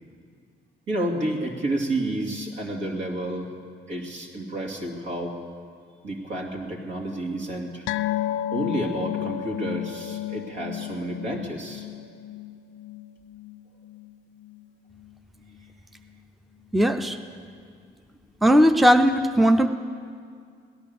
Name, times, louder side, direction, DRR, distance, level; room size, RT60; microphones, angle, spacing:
voice 1, 0.9-3.5 3.9-5.4 6.0-7.9 8.5-11.9, right 1 dB, 70° right, 0 dB, 2.7 m, -30 dB
sound 1, 7.9-14.7 15.0-15.2 15.5-15.6, left 12 dB, 80° left, 0.4 m, -33 dB
voice 2, 16.7-17.2 18.4-19.7, equal, ahead, 8 dB, 0.6 m, -18 dB
17.5 x 11.0 x 6.9 m, 2.2 s
cardioid pair, 90°, 20 cm